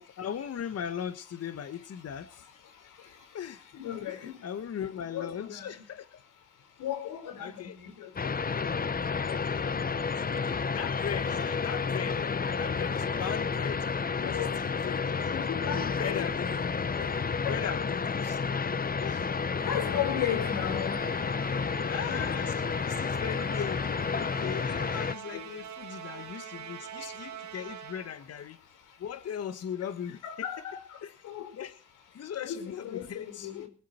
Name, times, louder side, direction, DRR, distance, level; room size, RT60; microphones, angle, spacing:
voice 1, 0.0-2.4 3.3-3.7 4.1-6.2 7.4-7.8 9.2-9.8 10.3-13.9 14.2-15.4 16.0-16.8 17.5-18.4 19.0-19.3 21.9-28.6 29.0-30.5 31.0-31.1 31.5-31.8 32.1-33.7, left 8 dB, 55° left, 1.4 m, -39 dB
voice 2, 3.7-4.3 5.1-5.7 6.8-7.5 7.8-8.3 14.2-14.5 15.3-16.3 17.4-17.8 19.6-21.0 22.0-22.3 25.3-25.4 29.8-29.9 30.2-30.8 31.2-31.5 32.4-33.7, left 10 dB, 85° left, 4.7 m, -35 dB
sound 1, 8.2-25.2, left 5 dB, 30° left, 1.0 m, -31 dB
Musical instrument, 19.8-28.3, right 8 dB, 80° right, 2.9 m, -45 dB
21.0 x 11.5 x 4.4 m
cardioid pair, 90°, 30 cm